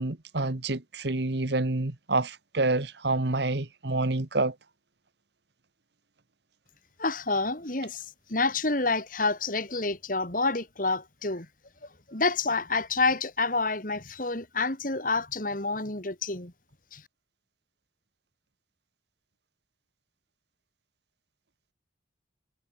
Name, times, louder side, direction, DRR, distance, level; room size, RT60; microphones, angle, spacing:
voice 1, 0.0-4.5, right 2 dB, 65° right, 1.4 m, -28 dB
voice 2, 7.0-11.5 12.1-16.5 16.9-17.0, left 3 dB, 45° left, 2.9 m, -28 dB
head